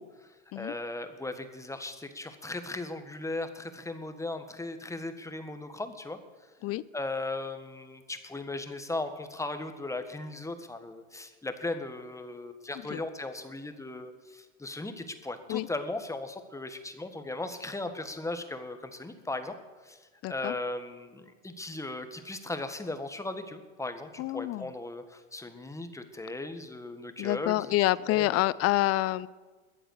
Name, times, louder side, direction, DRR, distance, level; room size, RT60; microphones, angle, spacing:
voice 1, 0.0-6.2 6.9-19.6 19.8-27.7 28.1-28.5, left 2 dB, 10° left, 8 dB, 1.5 m, -37 dB
voice 2, 20.2-20.5 24.2-24.7 27.2-29.3, left 17 dB, 35° left, 19 dB, 0.6 m, -27 dB
21.5 x 7.9 x 6.5 m, 1.3 s
hypercardioid pair, 95°, 40 cm